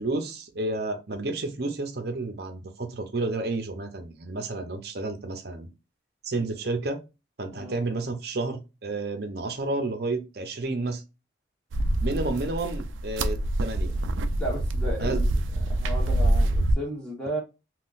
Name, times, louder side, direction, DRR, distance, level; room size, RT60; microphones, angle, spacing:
voice 1, 0.0-5.7 6.2-7.0 7.4-11.0 12.0-13.9 15.0-15.2, right 2 dB, 55° right, 0.7 m, -31 dB
sound 1, 11.7-16.7, right 1 dB, 80° right, 0.4 m, -25 dB
voice 2, 14.4-15.3 15.7-17.4, right 1 dB, 5° left, 1.2 m, -34 dB
3.7 x 2.4 x 2.5 m
head